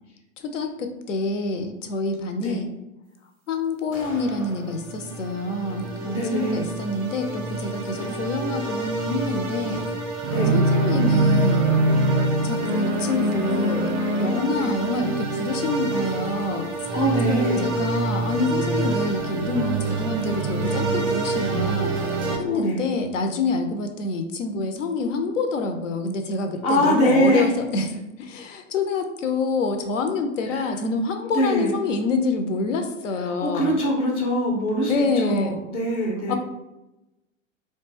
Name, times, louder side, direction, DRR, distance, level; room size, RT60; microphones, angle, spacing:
voice 1, 0.4-2.7 3.5-9.9 10.5-11.7 12.4-17.0 17.3-21.9 22.4-33.8 34.9-35.6 36.3-36.4, left 3 dB, 70° left, 6 dB, 0.5 m, -27 dB
sound 1, 3.9-4.9, left 1 dB, 85° left, 0.9 m, -40 dB
sound 2, 3.9-22.4, right 2 dB, 30° right, 0.6 m, -25 dB
voice 2, 6.0-6.7 7.9-8.1 10.2-10.6 14.5-14.7 16.9-17.6 22.4-22.9 26.6-27.4 30.5-30.7 31.3-31.8 33.2-36.4, equal, 15° left, 0 dB, 0.4 m, -23 dB
2.4 x 2.2 x 3.1 m, 0.96 s
figure-of-eight pair, 95°, 39 cm